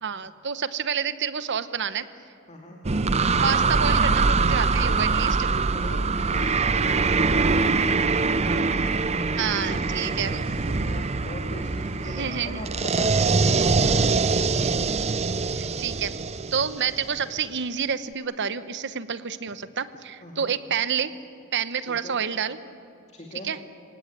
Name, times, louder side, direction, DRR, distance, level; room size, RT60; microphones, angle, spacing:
voice 1, 0.0-2.1 3.4-5.5 9.4-10.4 12.0-12.6 15.5-16.1 16.5-21.1 21.5-22.6 23.4-23.6, right 7 dB, 60° right, 13 dB, 1.0 m, -29 dB
voice 2, 2.5-2.8 5.7-14.7 20.2-20.5 21.8-22.2 23.1-23.5, left 1 dB, 35° left, 0 dB, 2.5 m, -40 dB
sound 1, 2.8-17.4, right 4 dB, 30° right, 0.6 m, -23 dB
27.0 x 17.5 x 9.1 m, 2.7 s
head